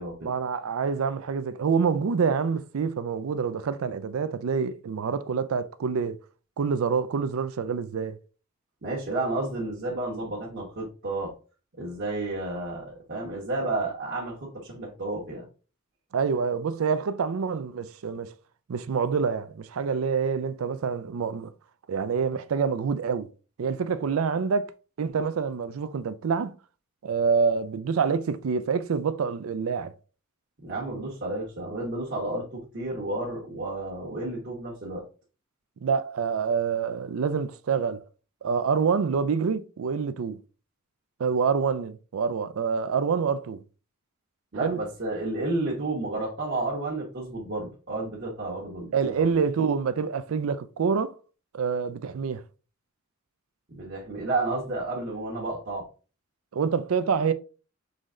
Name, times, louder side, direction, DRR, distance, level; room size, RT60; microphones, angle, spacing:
voice 1, 0.2-6.2 6.6-8.2 16.1-18.3 18.7-21.5 21.9-23.3 23.6-24.7 25.0-26.6 27.0-29.9 35.8-38.0 38.4-40.4 41.2-43.6 44.6-44.8 48.9-51.1 51.5-52.4 56.5-57.3, right 6 dB, 80° right, 0.4 m, -26 dB
voice 2, 8.8-11.3 11.8-15.4 30.6-35.0 44.5-49.4 53.7-55.8, right 2 dB, 55° right, 1.2 m, -31 dB
3.9 x 3.1 x 3.7 m
head